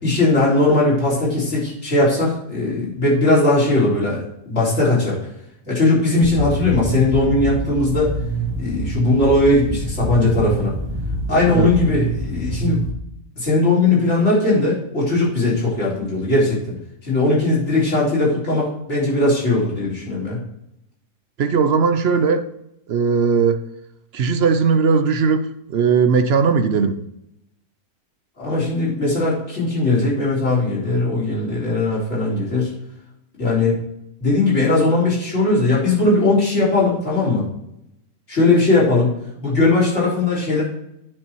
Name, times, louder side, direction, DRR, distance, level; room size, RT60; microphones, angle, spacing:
voice 1, 0.0-5.2 5.7-8.1 8.6-10.7 11.3-12.8 13.4-16.8 17.0-20.4 28.4-32.7 33.4-33.8 34.2-37.4 38.3-39.1 39.4-40.6, left 2 dB, 45° left, 4.2 m, -19 dB
sound 1, 6.2-12.9, right 1 dB, 20° right, 0.9 m, -26 dB
voice 2, 21.4-22.5 22.9-23.6 24.1-27.0, right 5 dB, 55° right, 0.7 m, -18 dB
9.7 x 5.6 x 4.6 m
omnidirectional pair, 1.6 m